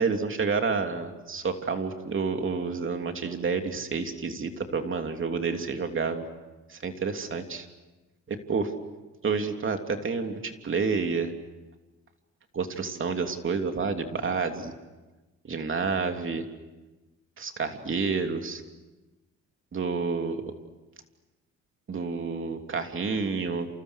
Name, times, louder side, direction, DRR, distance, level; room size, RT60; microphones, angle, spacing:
voice 1, 0.0-6.2 6.7-7.7 8.3-8.7 9.2-11.3 12.5-14.7 15.5-16.4 17.4-18.6 19.7-20.4 21.9-23.7, right 5 dB, 40° right, 5 dB, 3.2 m, -29 dB
29.0 x 29.0 x 6.6 m, 1.1 s
cardioid pair, 90°, 30 cm